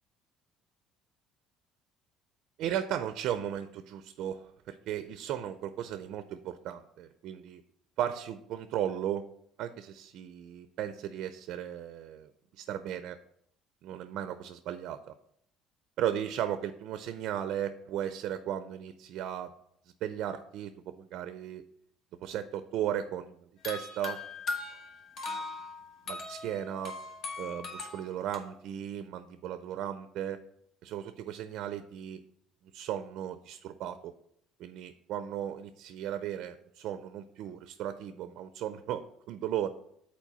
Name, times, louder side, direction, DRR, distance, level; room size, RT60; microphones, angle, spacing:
voice 1, 2.6-7.6 8.0-9.3 9.6-13.2 13.8-15.1 16.0-19.5 20.0-21.6 22.2-24.2 26.1-26.9 27.4-30.4 30.8-32.2 32.7-34.1 34.6-39.7, right 10 dB, 60° right, 10 dB, 0.5 m, -36 dB
sound 1, 23.6-28.4, left 3 dB, 45° left, 1.2 m, -39 dB
7.4 x 4.3 x 5.4 m, 0.71 s
cardioid pair, 145°, 0 cm